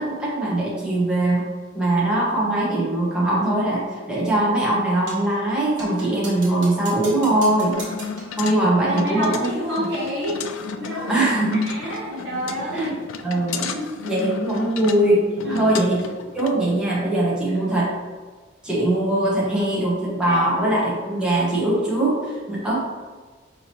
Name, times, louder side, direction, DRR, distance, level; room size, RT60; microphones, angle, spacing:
voice 1, 0.0-1.4 1.7-7.8 8.4-9.6 11.1-11.8 12.7-12.9 13.2-13.7 14.0-16.0 16.3-17.9 18.6-22.8, right 1 dB, 5° right, -7 dB, 0.7 m, -21 dB
sound 1, 5.1-5.3 5.8-8.4, right 3 dB, 80° right, 1.1 m, -39 dB
sound 2, 7.7-16.5, left 6 dB, 85° left, 0.3 m, -34 dB
voice 2, 8.8-10.4 10.8-11.3 11.6-13.0 13.7-14.1 15.4-15.7 20.3-20.4, equal, 55° right, -10 dB, 0.9 m, -29 dB
4.6 x 2.8 x 2.9 m, 1.4 s
head